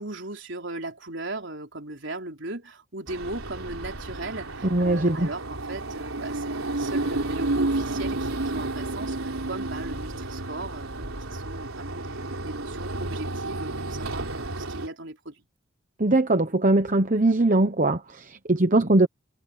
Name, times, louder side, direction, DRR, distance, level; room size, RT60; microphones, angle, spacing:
voice 1, 0.0-15.4, right 2 dB, 60° right, 4.1 m, -37 dB
sound 1, 3.1-14.9, right 2 dB, 90° right, 4.1 m, -31 dB
voice 2, 4.7-5.3 16.0-19.1, right 2 dB, 40° right, 1.0 m, -21 dB
head